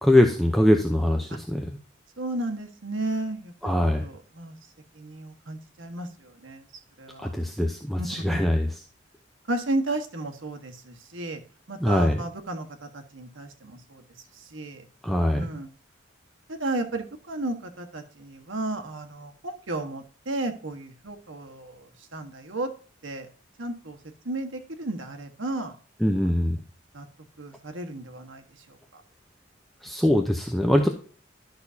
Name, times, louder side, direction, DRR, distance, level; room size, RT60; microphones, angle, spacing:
voice 1, 0.0-1.7 3.6-4.0 7.2-8.7 11.8-12.2 15.0-15.5 26.0-26.6 29.8-30.9, left 1 dB, ahead, 3 dB, 0.7 m, -22 dB
voice 2, 2.2-3.7 4.0-4.5 5.0-6.6 7.0-7.3 8.0-8.5 9.5-11.4 11.7-14.0 14.4-14.8 15.3-15.7 16.5-22.7 23.0-23.3 23.6-24.0 24.2-25.7 26.9-27.0 27.4-28.4 28.9-29.0, right 2 dB, 90° right, 5 dB, 1.5 m, -33 dB
12.0 x 6.3 x 2.8 m, 0.41 s
head